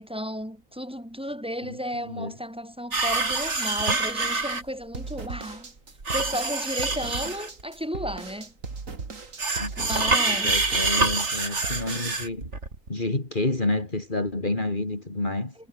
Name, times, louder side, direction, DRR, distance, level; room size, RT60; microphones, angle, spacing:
voice 1, 0.0-5.7 6.1-8.5 9.8-10.6, equal, 5° right, 7.7 m, -33 dB
voice 2, 2.1-2.4 9.6-12.5 12.9-15.5, left 2 dB, 35° left, 3.5 m, -29 dB
sound 1, 2.9-4.6 6.0-7.6 9.4-12.9, right 3 dB, 60° right, 3.3 m, -26 dB
sound 2, 4.9-12.2, right 4 dB, 75° right, 3.0 m, -38 dB
omnidirectional pair, 1.4 m